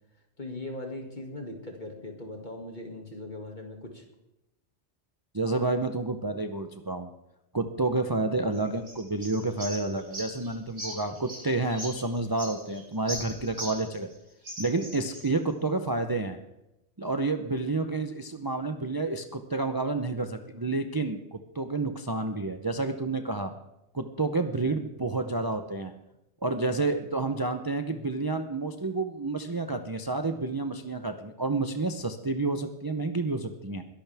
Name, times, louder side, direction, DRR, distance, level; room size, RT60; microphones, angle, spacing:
voice 1, 0.4-4.0, left 2 dB, 40° left, 2 dB, 2.4 m, -39 dB
voice 2, 5.3-7.1 7.5-14.1 14.6-16.4 17.0-23.5 23.9-25.9 26.4-33.8, right 3 dB, 25° right, 7 dB, 0.7 m, -29 dB
sound 1, 8.5-14.1 14.4-15.3, equal, 80° right, 5.8 m, -40 dB
21.5 x 11.5 x 3.5 m, 0.90 s
omnidirectional pair, 1.2 m